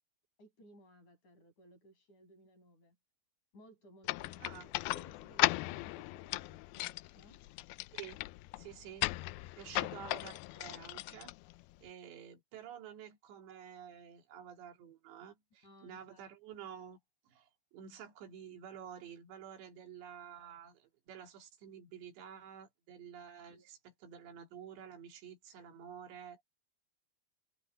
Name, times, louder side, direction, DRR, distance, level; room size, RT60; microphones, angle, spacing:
voice 1, 0.4-3.0 3.5-7.4 9.7-9.9 15.6-16.2 23.5-23.7, equal, 45° left, 8.3 m, -61 dB
sound 1, 4.0-11.9, left 20 dB, 90° left, 2.1 m, -37 dB
voice 2, 7.9-8.3 8.6-9.1 9.6-11.3 11.8-17.0 17.3-26.4, right 8 dB, 90° right, 4.8 m, -50 dB
omnidirectional pair, 4.9 m